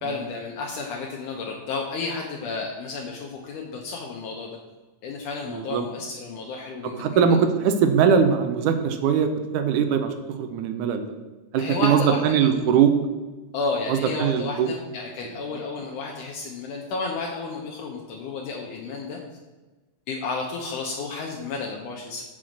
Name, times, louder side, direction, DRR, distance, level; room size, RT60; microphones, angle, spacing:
voice 1, 0.0-4.6 5.0-7.2 11.6-12.5 13.5-19.2 20.1-22.2, left 4 dB, 75° left, -1 dB, 2.3 m, -32 dB
voice 2, 5.5-5.8 7.0-10.1 10.4-11.1 11.5-12.9 13.9-14.7, right 7 dB, 75° right, 8 dB, 2.1 m, -21 dB
7.5 x 6.1 x 6.5 m, 1.2 s
omnidirectional pair, 3.8 m